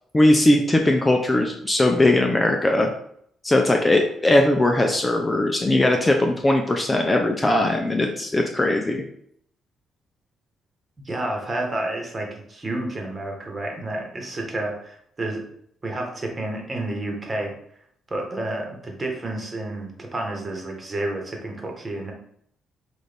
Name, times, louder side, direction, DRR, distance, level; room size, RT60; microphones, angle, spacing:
voice 1, 0.1-2.9 3.4-9.0, left 1 dB, 20° left, 3 dB, 0.5 m, -19 dB
voice 2, 11.0-15.5 15.8-17.5 18.1-22.1, right 1 dB, 25° right, 1 dB, 1.3 m, -30 dB
6.1 x 2.6 x 3.4 m, 0.68 s
cardioid pair, 90°, 0 cm